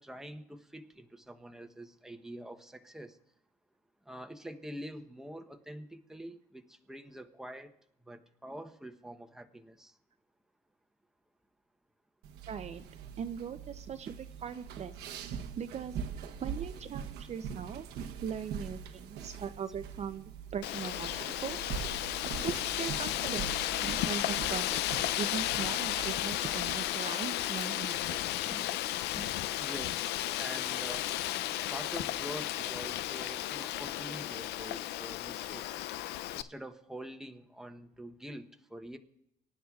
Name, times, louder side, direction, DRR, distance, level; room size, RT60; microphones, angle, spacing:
voice 1, 0.0-3.2 4.1-7.7 8.0-10.0 15.5-15.6 28.4-28.8 29.1-31.1 31.7-35.8 36.3-39.0, right 1 dB, 5° right, 5 dB, 0.9 m, -46 dB
sound 1, 12.2-27.0, right 7 dB, 80° right, 1.0 m, -43 dB
voice 2, 12.5-12.8 13.2-15.0 15.6-16.0 16.4-17.9 18.2-21.1 21.4-21.7 22.4-28.2, right 7 dB, 40° right, 8 dB, 0.6 m, -40 dB
Wind, 20.6-36.4, left 14 dB, 80° left, 0.4 m, -34 dB
24.5 x 11.0 x 2.4 m, 0.79 s
cardioid pair, 110°, 17 cm